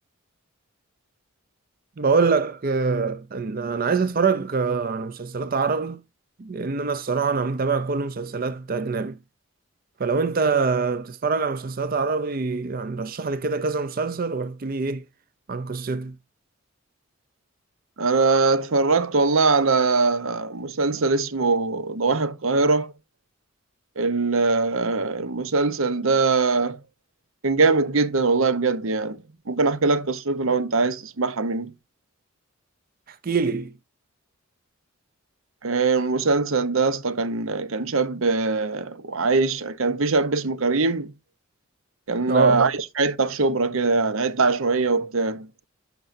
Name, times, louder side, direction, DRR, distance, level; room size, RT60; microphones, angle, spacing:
voice 1, 2.0-6.0 6.4-9.2 10.0-15.0 15.5-16.2 33.1-33.7 42.3-42.7, right 4 dB, 45° right, 0.5 m, -25 dB
voice 2, 18.0-22.9 24.0-26.8 27.4-31.7 35.6-41.1 42.1-45.5, right 3 dB, 75° right, 0.8 m, -22 dB
12.0 x 5.4 x 2.6 m
head